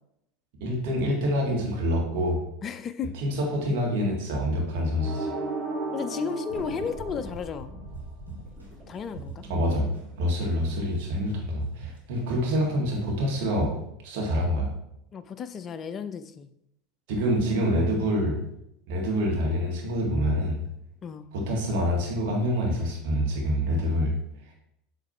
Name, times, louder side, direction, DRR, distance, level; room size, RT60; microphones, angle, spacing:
voice 1, 0.6-2.4 3.2-5.3 9.5-9.9 10.2-13.7 14.0-14.7 17.1-18.4 18.9-20.6 21.3-24.1, equal, 55° right, -1 dB, 1.7 m, -26 dB
voice 2, 2.6-3.1 5.9-7.7 8.9-9.5 15.1-16.5 21.0-21.3, left 6 dB, 30° left, 12 dB, 0.5 m, -33 dB
sound 1, 5.0-8.0, right 2 dB, 40° right, 2.0 m, -34 dB
sound 2, 6.5-11.2, equal, 20° right, 1.5 m, -44 dB
sound 3, 7.9-10.3 10.6-13.0, right 4 dB, 90° right, 2.1 m, -42 dB
7.3 x 3.2 x 4.5 m, 0.79 s
figure-of-eight pair, 75°, 0 cm